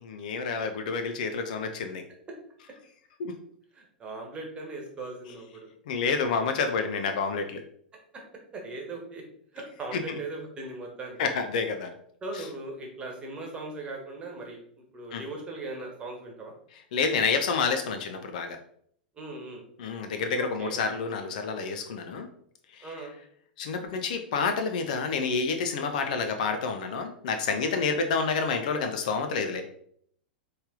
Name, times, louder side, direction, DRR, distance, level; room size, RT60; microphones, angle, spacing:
voice 1, 0.0-2.0 3.2-3.4 5.9-7.6 9.9-10.0 11.2-11.9 12.3-12.4 15.1-15.2 16.9-18.6 19.8-22.3 22.7-22.9 23.6-29.6, left 5 dB, 50° left, 6 dB, 0.6 m, -29 dB
voice 2, 3.7-5.7 8.1-8.2 8.5-9.2 9.5-11.2 12.2-14.6 14.9-16.5 19.1-19.6 20.3-20.8 22.8-23.1 27.6-27.8, right 2 dB, 20° right, 1 dB, 1.3 m, -39 dB
4.3 x 3.3 x 3.7 m, 0.64 s
figure-of-eight pair, 95°, 5 cm